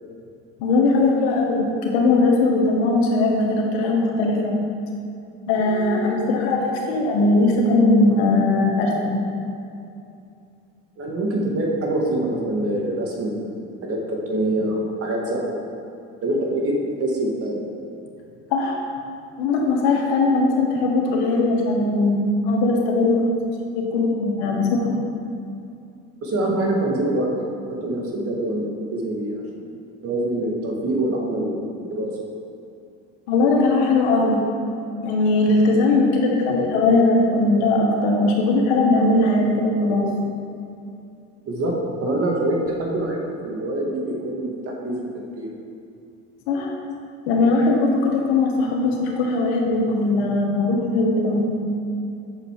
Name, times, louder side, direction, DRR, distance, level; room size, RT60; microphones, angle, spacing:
voice 1, 0.6-4.5 5.5-9.1 18.5-18.8 19.4-23.3 23.7-25.1 33.3-34.4 35.0-40.0 46.5-46.8 47.3-51.4, left 2 dB, 90° left, 0 dB, 1.6 m, -19 dB
voice 2, 11.0-15.6 16.2-17.6 26.2-29.4 30.0-32.1 41.4-41.7 42.0-45.5, right 1 dB, 45° right, -1 dB, 1.8 m, -25 dB
8.0 x 6.7 x 4.7 m, 2.6 s
supercardioid pair, 110°, 32 cm